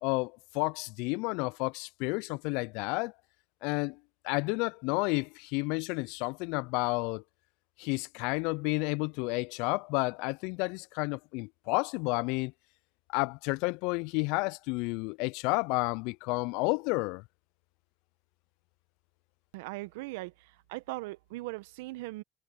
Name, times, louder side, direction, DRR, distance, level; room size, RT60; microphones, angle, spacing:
voice 1, 0.0-3.1 3.6-4.0 4.2-7.2 7.8-12.5 13.1-17.2, left 29 dB, 75° left, 0.4 m, -31 dB
voice 2, 19.5-22.2, right 21 dB, 80° right, 1.2 m, -39 dB
hypercardioid pair, 55°, 0 cm